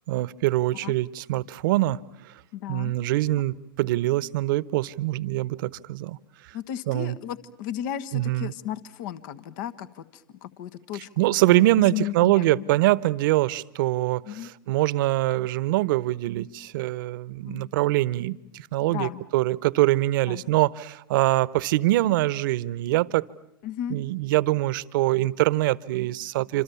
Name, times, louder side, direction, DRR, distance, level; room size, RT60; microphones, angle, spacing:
voice 1, 0.1-2.3 2.7-6.2 6.4-6.6 6.9-7.2 8.1-8.5 11.2-23.2 23.9-26.6, right 17 dB, 60° right, 18 dB, 0.9 m, -24 dB
voice 2, 2.5-2.9 6.5-11.1 11.5-12.7 14.2-14.5 17.4-17.7 18.9-19.2 20.3-20.4 23.6-24.0, left 10 dB, 55° left, 13 dB, 1.4 m, -35 dB
27.5 x 26.5 x 7.0 m, 0.81 s
hypercardioid pair, 105°, 12 cm